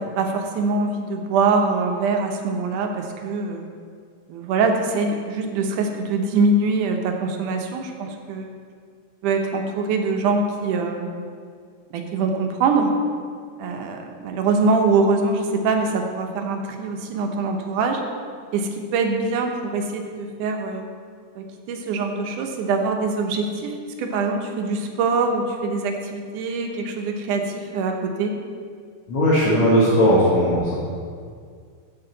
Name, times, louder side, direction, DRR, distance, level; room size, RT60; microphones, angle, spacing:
voice 1, 0.0-3.6 4.3-8.5 9.2-11.1 11.9-13.0 13.6-18.0 18.5-20.9 21.4-28.4, right 3 dB, 80° right, 3 dB, 2.5 m, -23 dB
voice 2, 29.1-30.8, equal, 60° left, -8 dB, 2.8 m, -17 dB
15.0 x 6.7 x 4.0 m, 2.1 s
omnidirectional pair, 3.6 m